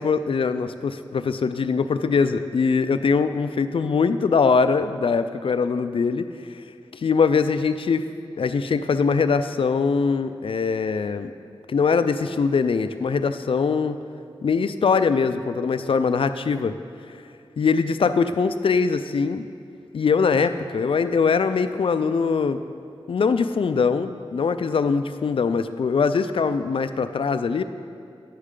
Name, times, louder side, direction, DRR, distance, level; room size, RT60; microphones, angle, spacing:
voice 1, 0.0-6.3 6.9-8.1 8.4-11.3 11.7-14.0 14.4-16.7 17.6-19.5 19.9-22.6 23.1-27.6, left 5 dB, 75° left, 11 dB, 0.4 m, -22 dB
10.5 x 9.8 x 3.8 m, 2.4 s
wide cardioid pair, 95°, 9 cm